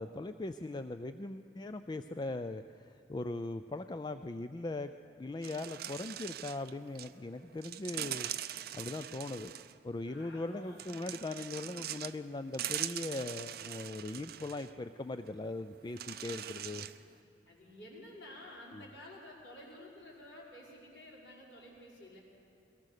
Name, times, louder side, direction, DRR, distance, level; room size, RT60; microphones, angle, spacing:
voice 1, 0.0-4.9 5.2-8.3 8.7-9.5 9.8-16.8 18.7-18.9, left 2 dB, 25° left, 10 dB, 0.4 m, -40 dB
sound 1, 5.4-7.1 7.6-9.7 10.8-12.2 12.5-14.7 15.3-15.4 16.0-17.0, right 12 dB, 55° right, 0.5 m, -42 dB
voice 2, 10.1-11.0 16.2-16.6 17.4-22.2, left 1 dB, 85° left, -3 dB, 5.1 m, -52 dB
22.5 x 18.5 x 6.6 m, 2.8 s
head